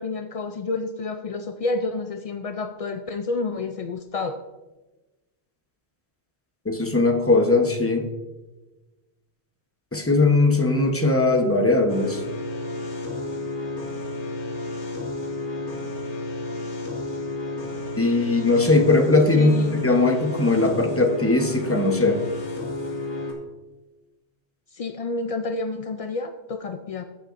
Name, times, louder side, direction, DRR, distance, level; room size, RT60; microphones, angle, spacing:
voice 1, 0.0-4.4 19.4-19.8 24.7-27.0, left 3 dB, 65° left, 8 dB, 0.3 m, -29 dB
voice 2, 6.6-8.1 9.9-12.2 18.0-22.2, left 2 dB, 15° left, 4 dB, 0.9 m, -19 dB
sound 1, 11.9-23.3, left 2 dB, 85° left, 2.2 m, -31 dB
15.0 x 8.5 x 2.6 m, 1.1 s
omnidirectional pair, 1.2 m